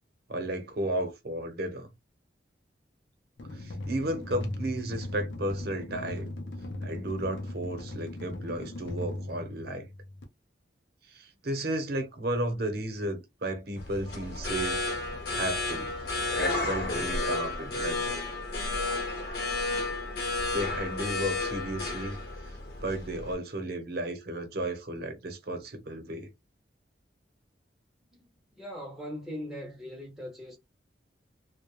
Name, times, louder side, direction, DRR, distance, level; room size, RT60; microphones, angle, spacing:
voice 1, 0.3-1.9 3.5-6.3 6.8-9.9 11.1-14.8 15.3-15.9 16.3-18.2 20.2-22.2 22.8-26.3, right 1 dB, 60° right, 0.7 m, -34 dB
sound 1, 3.4-10.2, left 1 dB, 80° left, 0.6 m, -38 dB
sound 2, 13.8-23.3, left 2 dB, 60° left, 0.8 m, -32 dB
voice 2, 28.6-30.6, equal, ahead, 0.5 m, -40 dB
2.3 x 2.1 x 2.9 m
head